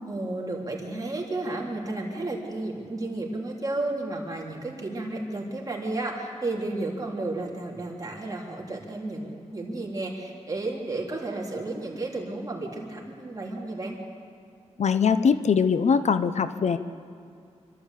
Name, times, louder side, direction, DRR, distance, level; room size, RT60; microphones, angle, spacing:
voice 1, 0.1-14.0, right 2 dB, 30° right, -2 dB, 3.8 m, -32 dB
voice 2, 14.8-16.8, left 6 dB, 70° left, 11 dB, 0.8 m, -22 dB
26.0 x 12.5 x 8.3 m, 2.3 s
wide cardioid pair, 100°, 12 cm